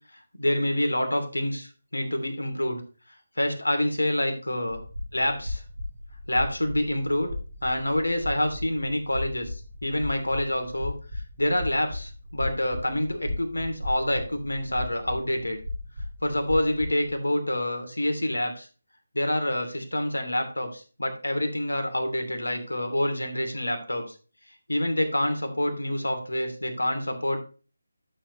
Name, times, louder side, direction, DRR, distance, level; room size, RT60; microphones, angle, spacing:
voice 1, 0.4-2.8 3.4-4.8 5.1-5.6 6.3-7.3 7.6-10.9 11.4-15.6 16.2-18.7 19.1-24.1 24.7-27.4, left 1 dB, 75° left, 5 dB, 2.8 m, -27 dB
sound 1, 4.7-17.2, left 2 dB, 55° right, 4.3 m, -37 dB
12.5 x 7.2 x 3.1 m, 0.35 s
figure-of-eight pair, 155°, 0 cm